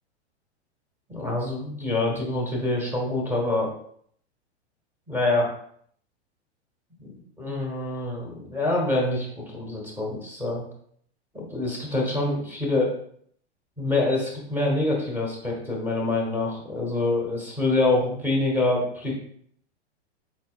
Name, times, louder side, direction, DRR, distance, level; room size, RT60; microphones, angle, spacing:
voice 1, 1.1-3.7 5.1-5.5 7.0-10.6 11.3-12.9 13.8-19.1, left 2 dB, 5° right, -4 dB, 1.4 m, -26 dB
4.3 x 4.2 x 2.3 m, 0.63 s
hypercardioid pair, 105°, 34 cm